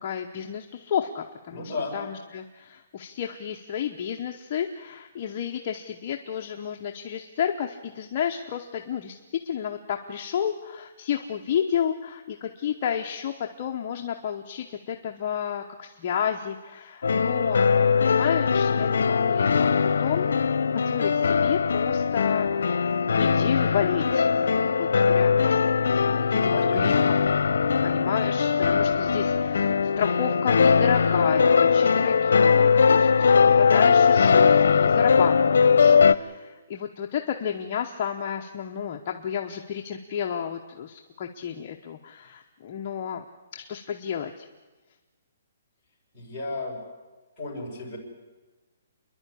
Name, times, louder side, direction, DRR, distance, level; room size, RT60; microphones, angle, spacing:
voice 1, 0.0-17.7 18.0-22.8 23.2-24.3 24.8-26.9 27.8-43.2 43.5-44.5, left 8 dB, 30° left, 1 dB, 0.9 m, -31 dB
voice 2, 1.5-2.0 26.5-27.1 46.1-46.8 47.4-48.0, left 2 dB, 5° left, -10 dB, 6.1 m, -34 dB
sound 1, 17.0-36.1, left 6 dB, 75° left, 0.8 m, -20 dB
28.0 x 11.0 x 9.9 m, 1.2 s
hypercardioid pair, 175°, 0 cm